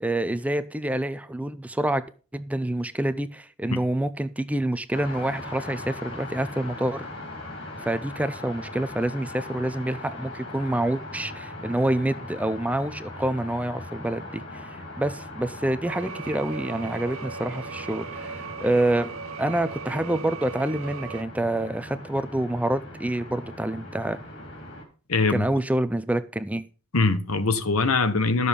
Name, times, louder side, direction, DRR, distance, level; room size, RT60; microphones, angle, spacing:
voice 1, 0.0-2.0 2.3-7.1 7.8-19.1 19.4-24.2 25.3-26.6, right 1 dB, 5° right, 0.5 m, -27 dB
sound 1, 4.9-24.8, left 2 dB, 60° left, 3.6 m, -40 dB
sound 2, 15.9-21.2, right 6 dB, 85° right, 0.9 m, -38 dB
voice 2, 25.1-25.5 26.9-28.5, left 3 dB, 85° left, 1.1 m, -22 dB
12.0 x 6.9 x 5.3 m
head